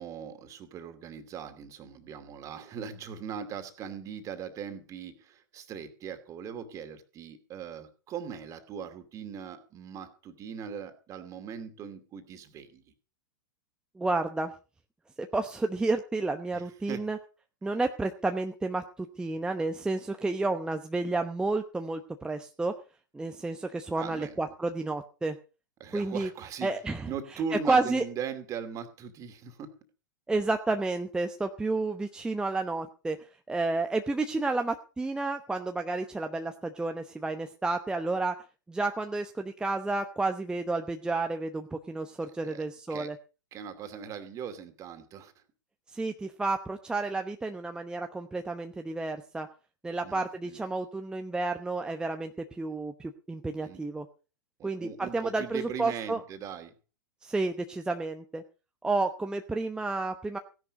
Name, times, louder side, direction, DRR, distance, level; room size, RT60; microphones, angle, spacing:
voice 1, 0.0-12.8 16.5-17.1 23.9-24.3 25.8-26.7 27.1-29.7 42.4-42.6 42.9-43.1 43.5-45.3 50.0-50.6 53.6-53.8 54.6-56.7, right 7 dB, 30° right, 8 dB, 2.5 m, -40 dB
voice 2, 14.0-14.5 15.2-17.2 17.6-22.7 23.1-25.4 25.9-26.3 26.6-27.1 27.6-28.0 30.3-33.2 33.5-38.3 38.7-43.2 45.9-49.5 49.8-54.1 54.6-56.2 57.2-58.4 58.8-60.4, right 3 dB, 5° right, 5 dB, 0.9 m, -31 dB
16.5 x 11.0 x 5.2 m, 0.35 s
figure-of-eight pair, 95°, 11 cm